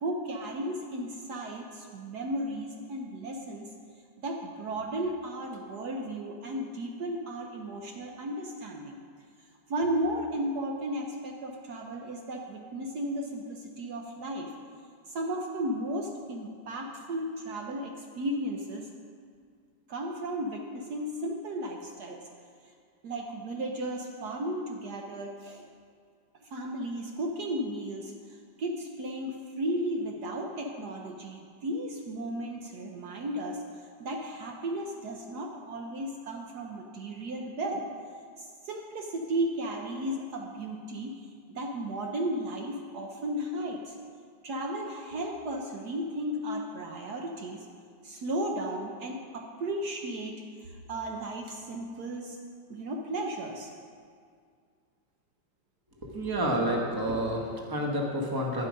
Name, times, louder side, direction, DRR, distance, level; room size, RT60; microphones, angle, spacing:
voice 1, 0.0-3.7 4.2-9.0 9.7-14.5 15.1-18.9 19.9-22.2 23.0-25.6 26.5-33.6 34.0-37.8 38.4-41.1 41.5-43.9 44.4-47.7 48.0-52.4 52.7-53.7 56.7-56.8, right 1 dB, 65° right, 1 dB, 1.4 m, -34 dB
voice 2, 56.0-58.7, equal, 15° right, 0 dB, 1.2 m, -29 dB
11.0 x 10.0 x 5.2 m, 2.1 s
omnidirectional pair, 2.0 m